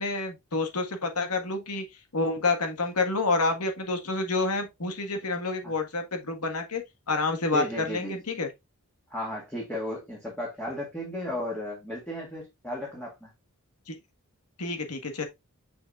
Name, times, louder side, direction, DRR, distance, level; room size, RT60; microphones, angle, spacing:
voice 1, 0.0-1.8 2.1-8.5 13.9-14.0 14.6-15.2, left 3 dB, 85° left, 1.6 m, -28 dB
voice 2, 7.5-8.2 9.1-13.3, left 1 dB, 5° left, 2.0 m, -34 dB
6.6 x 5.9 x 2.4 m
head